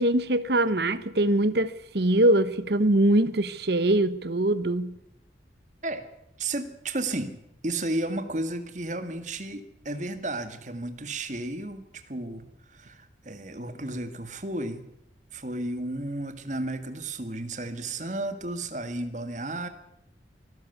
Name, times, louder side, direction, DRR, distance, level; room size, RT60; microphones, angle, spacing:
voice 1, 0.0-4.9, right 1 dB, 65° right, 15 dB, 1.2 m, -23 dB
voice 2, 6.4-7.4 7.6-14.8 15.3-19.7, right 2 dB, 40° right, 9 dB, 1.9 m, -33 dB
24.0 x 13.5 x 8.4 m, 0.80 s
head